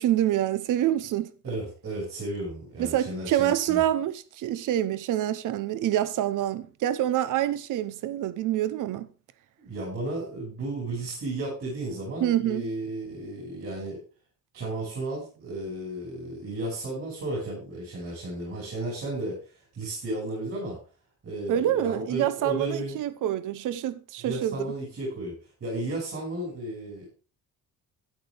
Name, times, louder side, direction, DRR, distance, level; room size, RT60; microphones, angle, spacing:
voice 1, 0.0-1.3 2.8-9.1 12.2-12.7 21.5-24.7, right 12 dB, 70° right, 0.8 m, -26 dB
voice 2, 1.4-3.8 9.6-14.0 14.5-20.8 21.2-23.0 24.2-27.1, right 2 dB, 40° right, 5.7 m, -34 dB
12.5 x 10.5 x 3.4 m
cardioid pair, 175°, 33 cm